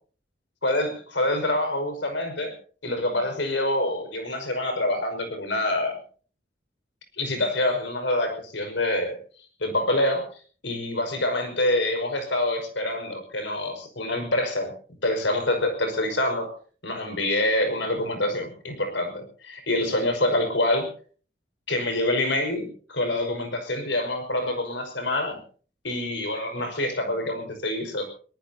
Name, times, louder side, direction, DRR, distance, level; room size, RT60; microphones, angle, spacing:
voice 1, 0.6-2.5 2.8-6.0 7.2-9.2 9.6-10.3 10.6-14.7 15.0-16.5 16.8-20.9 21.7-25.4 25.8-28.1, left 1 dB, 80° left, 5 dB, 5.3 m, -26 dB
23.5 x 19.0 x 2.8 m, 0.41 s
head